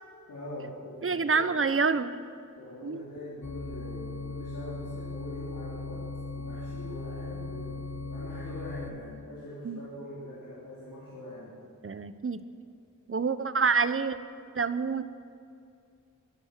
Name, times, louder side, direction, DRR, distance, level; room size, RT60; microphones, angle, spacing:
voice 1, 0.3-1.6 2.6-6.0 6.3-11.5, left 1 dB, 80° left, -8 dB, 3.5 m, -43 dB
voice 2, 1.0-2.2 2.8-3.0 9.6-9.8 11.8-12.4 13.1-14.2 14.5-15.0, right 5 dB, 40° right, 12 dB, 0.8 m, -27 dB
sound 1, 3.4-8.9, left 3 dB, 55° left, 1.5 m, -38 dB
22.5 x 9.4 x 6.7 m, 2.4 s
wide cardioid pair, 70°, 33 cm